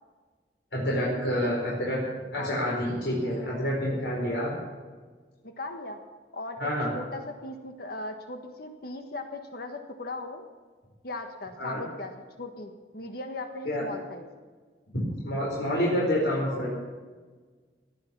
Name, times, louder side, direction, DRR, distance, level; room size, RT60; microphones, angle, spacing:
voice 1, 0.7-2.0 2.3-4.5 6.6-6.9 11.6-11.8 13.6-13.9 15.2-16.7, equal, 85° left, -5 dB, 4.5 m, -28 dB
voice 2, 5.4-6.0 6.3-10.4 11.0-12.1 12.4-14.3, left 2 dB, 60° left, 5 dB, 1.4 m, -38 dB
18.0 x 11.0 x 6.1 m, 1.4 s
head